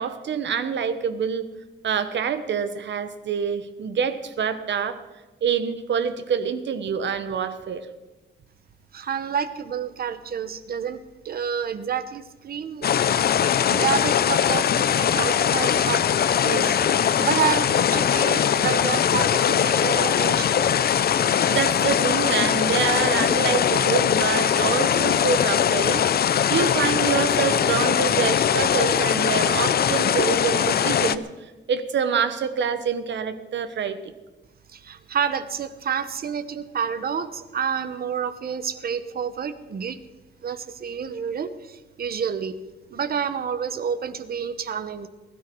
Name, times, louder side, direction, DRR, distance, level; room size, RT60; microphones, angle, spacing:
voice 1, 0.0-1.5 1.8-5.0 5.4-7.9 21.5-31.2 31.7-34.1, right 7 dB, 70° right, 11 dB, 1.3 m, -26 dB
voice 2, 8.9-12.9 13.7-16.1 16.4-16.8 17.2-20.7 34.7-40.0 40.4-42.6 42.9-45.1, right 7 dB, 50° right, 12 dB, 1.1 m, -29 dB
sound 1, 12.8-31.2, left 8 dB, 55° left, 0.6 m, -21 dB
20.0 x 13.0 x 4.7 m, 1.2 s
wide cardioid pair, 180°, 19 cm